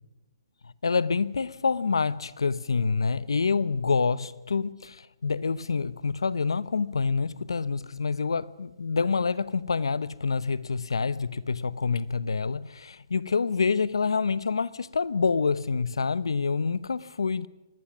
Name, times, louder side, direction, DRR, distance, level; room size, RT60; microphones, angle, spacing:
voice 1, 0.8-17.5, left 5 dB, 80° left, 0.9 m, -27 dB
25.0 x 20.0 x 6.2 m
hypercardioid pair, 135°, 3 cm